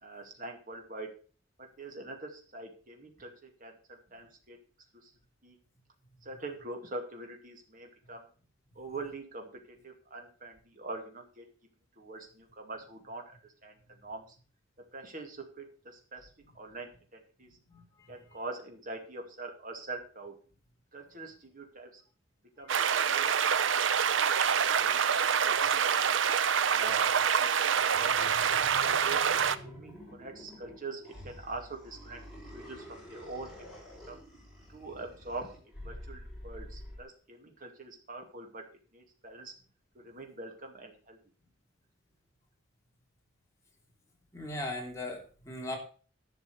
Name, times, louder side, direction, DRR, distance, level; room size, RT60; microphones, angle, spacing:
voice 1, 0.0-1.1 1.6-4.6 5.0-5.1 5.4-5.6 6.2-8.3 8.8-9.5 9.8-11.4 12.0-13.8 14.0-14.4 14.9-16.3 16.5-17.5 18.1-20.3 20.9-22.0 22.6-23.3 24.5-26.2 26.6-29.2 29.6-32.2 32.5-33.7 34.1-34.2 34.7-38.6 38.9-39.5 39.9-41.2, right 2 dB, 45° right, 3 dB, 2.4 m, -44 dB
voice 2, 17.7-18.1 44.3-45.8, left 1 dB, 15° left, 0 dB, 2.9 m, -39 dB
sound 1, 22.7-29.6, right 7 dB, 70° right, 0.6 m, -26 dB
sound 2, 27.9-37.0, equal, ahead, 5.3 m, -48 dB
11.5 x 6.0 x 6.8 m, 0.40 s
head